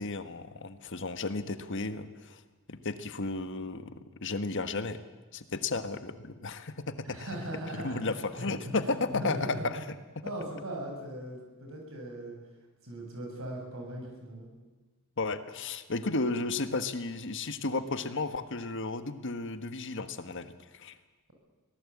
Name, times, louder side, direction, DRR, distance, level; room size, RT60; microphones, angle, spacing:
voice 1, 0.0-2.4 2.7-3.9 4.2-5.0 5.3-7.3 7.8-9.8 15.2-20.9, left 3 dB, 60° left, 10 dB, 1.4 m, -33 dB
voice 2, 7.0-8.3 8.6-9.6 10.2-12.4 12.8-14.5, right 1 dB, 70° right, 1 dB, 7.7 m, -39 dB
24.5 x 18.5 x 8.7 m, 1.2 s
head